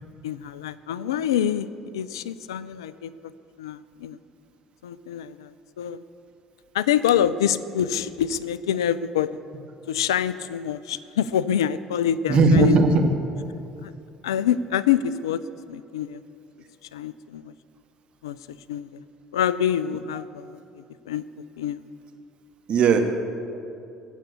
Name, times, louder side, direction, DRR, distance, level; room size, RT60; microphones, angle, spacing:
voice 1, 0.2-1.7 1.9-3.1 3.6-4.2 4.8-6.0 6.7-9.4 9.9-12.8 13.8-13.9 14.2-15.4 15.7-16.2 16.9-17.5 18.2-18.4 18.7-19.0 19.3-21.2 21.6-21.9, left 9 dB, 75° left, 16 dB, 0.4 m, -26 dB
voice 2, 12.3-12.9 13.8-13.9 22.7-23.0, right 3 dB, 45° right, 4 dB, 1.6 m, -17 dB
16.5 x 7.3 x 8.2 m, 2.6 s
figure-of-eight pair, 55°, 3 cm